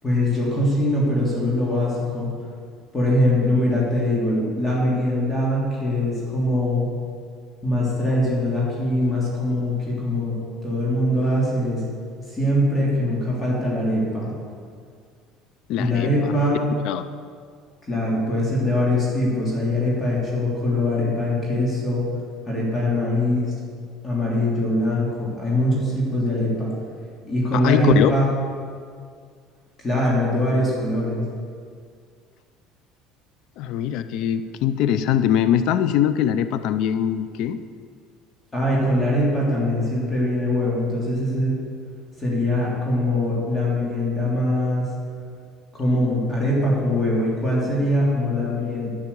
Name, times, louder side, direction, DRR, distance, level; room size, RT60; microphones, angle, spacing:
voice 1, 0.0-2.3 2.9-6.9 7.6-10.3 10.6-11.8 12.3-14.3 15.8-16.7 17.9-22.1 22.5-23.5 24.0-26.7 27.2-28.3 29.8-31.2 38.5-41.6 42.2-44.9 45.7-48.9, left 1 dB, 20° left, -5 dB, 3.3 m, -22 dB
voice 2, 15.7-16.3 16.8-17.1 27.5-28.1 33.6-37.6, left 10 dB, 65° left, 12 dB, 0.5 m, -22 dB
10.5 x 9.8 x 6.9 m, 2.1 s
cardioid pair, 135°, 0 cm